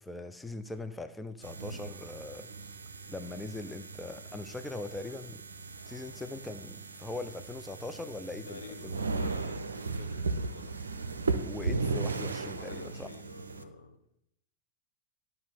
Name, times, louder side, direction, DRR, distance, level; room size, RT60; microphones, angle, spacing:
voice 1, 0.0-2.5 3.1-5.4 5.9-9.0 11.4-13.1, left 2 dB, 10° left, 9 dB, 0.5 m, -41 dB
sound 1, 1.4-13.6, right 3 dB, 75° right, 0.6 m, -37 dB
voice 2, 8.4-10.8 12.5-14.0, left 3 dB, 75° left, 4 dB, 1.2 m, -47 dB
12.0 x 5.4 x 4.3 m, 0.76 s
figure-of-eight pair, 90°, 0 cm